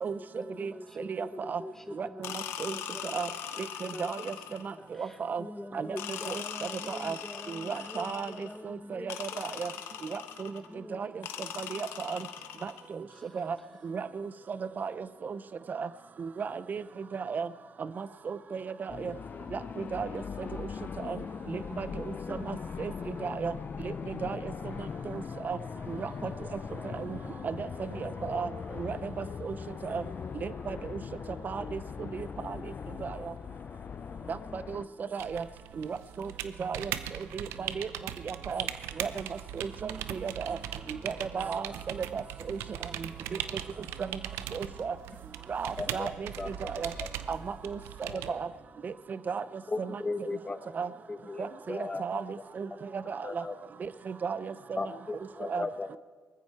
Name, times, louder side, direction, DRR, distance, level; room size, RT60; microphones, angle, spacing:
voice 1, 0.4-1.1 1.6-1.7 2.3-2.4 2.7-3.1 3.9-4.1 4.8-4.9 5.4-9.4 10.7-11.0, left 1 dB, 10° left, 9 dB, 0.7 m, -44 dB
voice 2, 1.1-1.6 2.0-2.1 2.6-2.7 3.1-3.3 4.0-4.3 5.0-5.4 5.7-5.9 6.3-6.4 6.9-7.2 7.5-8.3 8.6-9.7 10.1-10.5 10.9-11.1 11.6-12.2 12.6-12.7 13.3-13.6 13.8-15.4 15.7-15.9 16.2-16.8 17.1-17.5 18.0-19.1 19.5-19.6 19.9-20.1 21.0-21.2 21.5-21.9 22.3-22.9 23.2-23.5 23.8-23.9 24.2-24.4 25.1-25.6 25.9-26.1 26.9-27.1 27.4-27.7 28.0-28.5 28.8-29.0 29.4-29.5 29.8-30.0 30.4-31.0 31.4-31.8 32.1-32.6 33.0-33.2 34.3-34.8 35.1-35.4 35.8-36.3 36.6-36.9 37.3-37.9 38.3-38.6 39.0-39.1 39.6-40.6 41.0-42.2 42.5-42.6 44.0-44.1 44.5-44.9 45.5-46.3 46.6-46.9 47.3-47.8 48.3-48.5 48.8-48.9 49.3-49.4 49.8-50.0 50.7-50.9 51.4-52.2 52.6-52.7 52.9-53.4 54.1-54.5 55.5-55.6, right 6 dB, 45° right, 15 dB, 0.5 m, -34 dB
sound 1, 2.2-4.8 6.0-8.6 9.1-10.7 11.2-12.9, left 9 dB, 85° left, 1.1 m, -40 dB
sound 2, 18.9-34.9, left 6 dB, 45° left, 0.5 m, -40 dB
sound 3, 35.2-48.3, right 11 dB, 90° right, 0.7 m, -39 dB
voice 3, 45.8-46.1 46.4-46.7 47.0-47.1 48.1-48.4 49.7-50.6 51.1-52.0 53.2-53.5 54.8-56.0, left 3 dB, 25° left, 11 dB, 1.2 m, -36 dB
19.5 x 14.0 x 4.6 m, 1.5 s
supercardioid pair, 65°, 4 cm